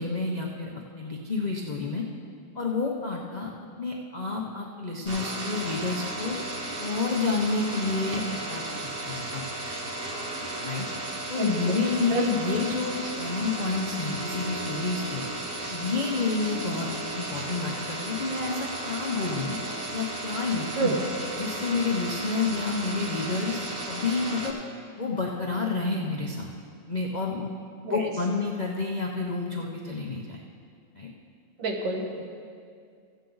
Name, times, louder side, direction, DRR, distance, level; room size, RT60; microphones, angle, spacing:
voice 1, 0.0-2.0 2.5-3.5 3.8-6.4 6.8-8.6 9.0-9.4 10.6-10.9 11.3-15.3 15.7-16.9 17.1-19.6 19.9-21.0 21.3-24.6 25.0-26.5 26.9-27.5 27.9-30.4 31.0-31.1 32.2-32.3, left 4 dB, 70° left, -1 dB, 0.4 m, -29 dB
sound 1, 5.0-24.5, right 1 dB, 35° right, 1.1 m, -34 dB
voice 2, 11.4-12.4 20.8-21.0 27.8-28.1 31.6-32.2, right 2 dB, 80° right, 2 dB, 1.9 m, -29 dB
15.5 x 8.0 x 3.9 m, 2.3 s
omnidirectional pair, 2.0 m